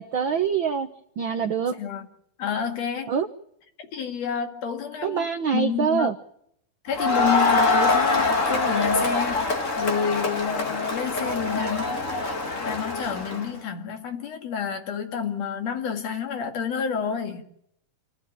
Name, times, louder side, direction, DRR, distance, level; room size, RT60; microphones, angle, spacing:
voice 1, 0.0-1.7 3.1-3.3 5.0-6.1, right 7 dB, 75° right, 1.1 m, -25 dB
voice 2, 2.4-3.1 3.9-5.3 5.5-6.1 6.8-9.4 9.8-12.0 12.6-17.4, left 7 dB, 55° left, 3.1 m, -29 dB
Crowd, 6.9-13.5, left 3 dB, 30° left, 1.7 m, -24 dB
27.5 x 14.5 x 8.8 m
omnidirectional pair, 3.6 m